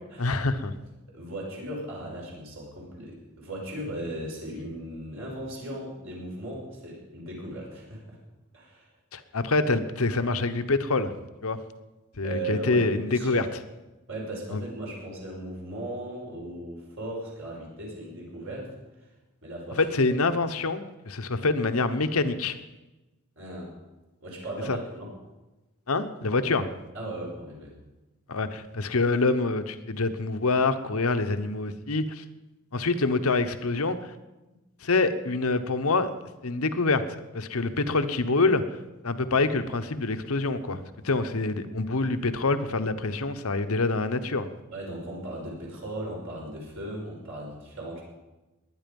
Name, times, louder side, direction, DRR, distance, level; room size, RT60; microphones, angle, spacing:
voice 1, 0.2-0.7 9.1-11.1 11.4-11.6 12.2-13.5 14.5-14.6 19.8-22.6 24.7-24.8 25.9-26.7 28.3-32.2 32.7-34.1 34.8-36.1 36.4-38.6 39.0-44.5, left 3 dB, 75° left, 10 dB, 1.0 m, -26 dB
voice 2, 1.1-8.2 8.5-8.9 12.2-13.5 14.1-18.7 19.4-19.9 23.4-23.7 24.2-25.1 26.9-27.7 44.7-48.0, right 1 dB, 60° right, -2 dB, 5.5 m, -37 dB
21.0 x 9.9 x 5.4 m, 1.1 s
head